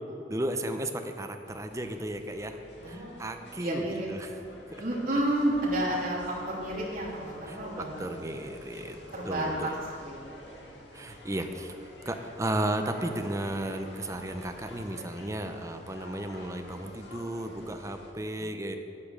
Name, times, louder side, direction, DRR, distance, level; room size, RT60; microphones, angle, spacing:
voice 1, 0.3-2.6 2.9-4.3 4.7-4.8 7.5-9.0 9.3-9.7 10.9-18.8, right 1 dB, 15° right, 6 dB, 0.7 m, -34 dB
sound 1, 1.4-18.1, left 1 dB, 65° left, 2.0 m, -49 dB
voice 2, 2.8-4.1 4.8-6.2 6.5-7.9 9.1-9.7 10.0-10.9 18.3-18.5, right 1 dB, 50° right, -5 dB, 3.0 m, -31 dB
10.5 x 8.6 x 6.4 m, 2.6 s
head